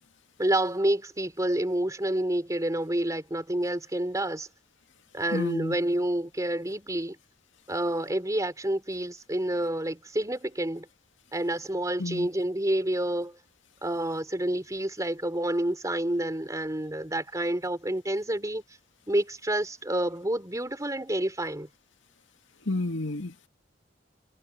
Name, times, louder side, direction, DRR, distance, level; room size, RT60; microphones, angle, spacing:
voice 1, 0.4-4.5 5.1-7.2 7.7-10.9 11.3-13.4 13.8-18.6 19.1-21.7, right 1 dB, 20° right, 3.5 m, -28 dB
voice 2, 5.3-5.8 12.0-12.3 22.7-23.3, left 2 dB, 85° left, 2.1 m, -30 dB
head